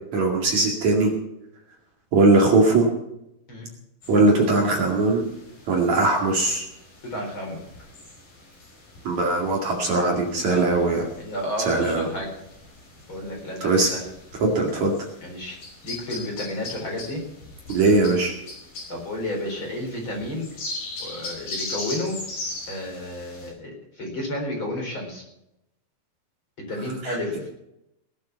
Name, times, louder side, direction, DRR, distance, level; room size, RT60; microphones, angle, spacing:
voice 1, 0.1-1.1 2.1-2.9 4.1-5.2 5.7-6.7 9.0-11.1 11.6-12.1 13.6-14.0 14.3-14.9 17.7-18.3 27.0-27.2, right 2 dB, 50° right, 0 dB, 3.4 m, -20 dB
sound 1, 4.0-23.5, left 2 dB, 65° left, 7.1 m, -40 dB
voice 2, 7.1-7.6 10.5-10.7 11.2-12.3 13.1-14.0 15.2-15.6 15.8-17.2 18.9-20.5 21.0-22.1 22.7-25.2 26.7-27.5, left 1 dB, 30° left, 0 dB, 4.8 m, -31 dB
19.5 x 8.4 x 7.1 m, 0.85 s
omnidirectional pair, 4.4 m